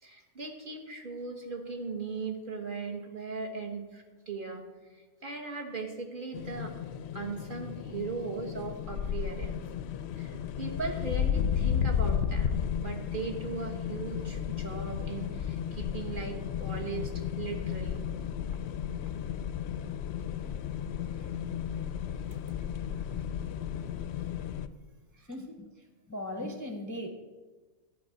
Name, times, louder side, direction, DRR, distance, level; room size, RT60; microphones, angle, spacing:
voice 1, 0.0-6.7 7.1-9.6 10.2-18.1, right 4 dB, 40° right, 1 dB, 1.4 m, -38 dB
sound 1, 6.3-24.7, left 8 dB, 65° left, 0.7 m, -33 dB
voice 2, 25.1-25.7 26.1-27.1, left 1 dB, 20° left, 4 dB, 0.6 m, -39 dB
12.0 x 5.1 x 7.6 m, 1.3 s
omnidirectional pair, 1.4 m